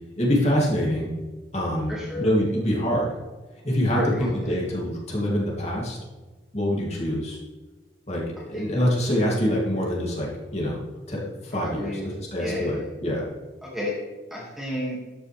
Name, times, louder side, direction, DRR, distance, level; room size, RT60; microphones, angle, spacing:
voice 1, 0.2-1.1 1.5-1.9 2.2-3.2 3.6-4.0 4.3-6.0 6.5-7.4 8.1-8.2 8.5-10.8 11.1-11.9 12.3-13.2, equal, 35° left, -3 dB, 2.8 m, -25 dB
voice 2, 1.9-2.3 3.9-4.5 8.4-8.7 11.6-12.1 12.4-12.9 13.6-14.0 14.3-15.0, left 1 dB, ahead, -5 dB, 2.3 m, -31 dB
12.5 x 9.3 x 3.5 m, 1.2 s
head